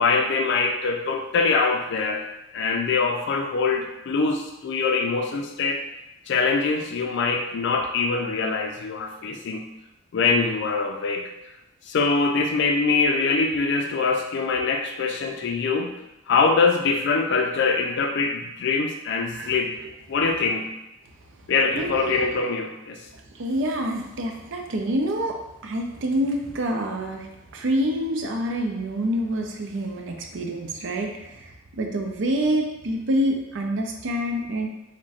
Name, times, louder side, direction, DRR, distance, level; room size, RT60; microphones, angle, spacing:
voice 1, 0.0-2.3 2.5-5.8 6.3-9.6 10.1-11.3 11.9-16.0 16.3-19.7 20.1-20.7 21.5-23.0, left 4 dB, 60° left, 4 dB, 0.4 m, -23 dB
voice 2, 21.8-22.4 23.3-25.4 25.6-27.3 27.5-34.7, right 1 dB, 70° right, 3 dB, 0.5 m, -27 dB
3.9 x 2.1 x 2.4 m, 0.91 s
head